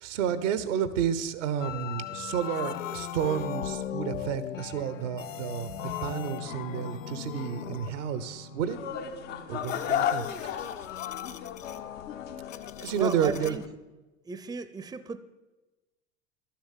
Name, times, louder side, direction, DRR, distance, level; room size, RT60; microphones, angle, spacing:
voice 1, 0.0-8.8 9.5-10.7 12.8-13.6, right 8 dB, 75° right, 14 dB, 1.0 m, -31 dB
sound 1, 1.6-13.6, left 10 dB, 90° left, 0.6 m, -39 dB
sound 2, 8.7-13.7, left 9 dB, 70° left, 1.2 m, -34 dB
voice 2, 12.9-13.6 14.3-15.2, right 4 dB, 10° right, 13 dB, 0.6 m, -35 dB
11.5 x 7.2 x 7.4 m, 1.1 s
hypercardioid pair, 75°, 37 cm